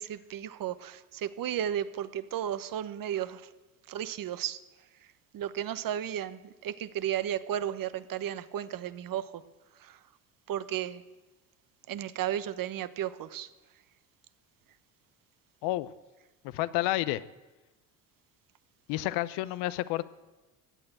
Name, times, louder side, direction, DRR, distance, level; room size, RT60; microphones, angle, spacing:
voice 1, 0.0-3.5 3.9-4.6 5.3-9.4 9.8-10.0 10.5-11.0 11.9-13.5, right 10 dB, 50° right, 14 dB, 1.0 m, -34 dB
voice 2, 15.6-15.9 16.4-17.3 18.9-20.0, left 16 dB, 70° left, 16 dB, 0.8 m, -30 dB
16.0 x 8.8 x 9.0 m, 1.2 s
hypercardioid pair, 70°, 44 cm